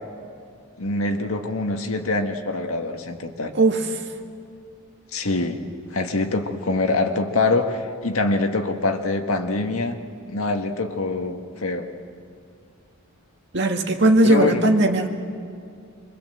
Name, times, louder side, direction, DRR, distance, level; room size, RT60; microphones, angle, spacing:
voice 1, 0.8-3.5 5.1-5.6 5.9-10.0 10.3-11.9 14.2-14.7, left 2 dB, 85° left, 5 dB, 1.7 m, -24 dB
voice 2, 3.5-4.0 13.5-15.1, right 2 dB, 55° right, 3 dB, 1.9 m, -18 dB
26.5 x 23.5 x 7.8 m, 2.4 s
head